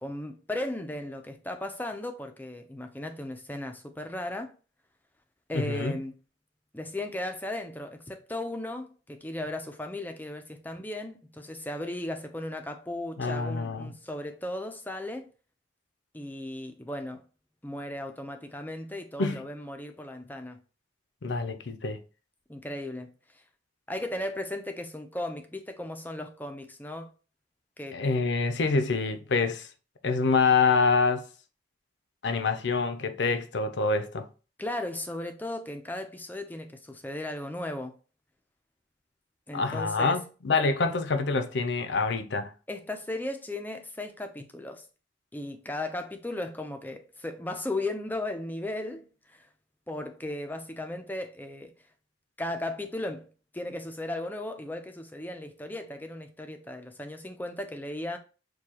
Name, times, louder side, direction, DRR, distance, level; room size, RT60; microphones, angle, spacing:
voice 1, 0.0-4.5 5.5-6.2 6.7-15.3 16.1-17.2 17.6-20.6 22.5-23.4 23.9-27.1 27.8-28.0 34.6-38.0 39.5-40.2 42.7-44.9 45.3-49.5 49.9-51.7 52.4-53.3 53.5-58.2, left 1 dB, 10° left, 0.5 m, -36 dB
voice 2, 5.5-5.9 13.2-13.9 19.2-19.4 21.2-22.0 27.9-29.7 30.0-31.3 32.2-34.3 39.5-42.5, left 4 dB, 65° left, 0.5 m, -26 dB
6.5 x 2.3 x 2.9 m
head